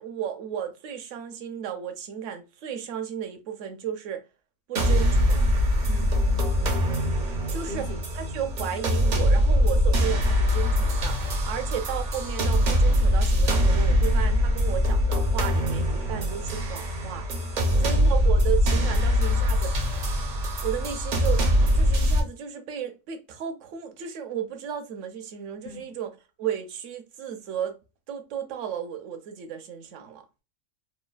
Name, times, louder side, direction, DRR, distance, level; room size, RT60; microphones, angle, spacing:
voice 1, 0.0-4.2 4.7-5.5 7.5-17.3 17.8-19.7 20.6-21.4 21.7-27.8 28.1-30.3, right 9 dB, 70° right, 0.9 m, -34 dB
sound 1, 4.8-22.2, equal, 55° right, 0.5 m, -23 dB
voice 2, 5.9-6.8 7.6-8.0 17.7-18.3 25.6-25.9, left 3 dB, 85° left, 1.2 m, -41 dB
3.2 x 2.2 x 2.2 m
omnidirectional pair, 1.4 m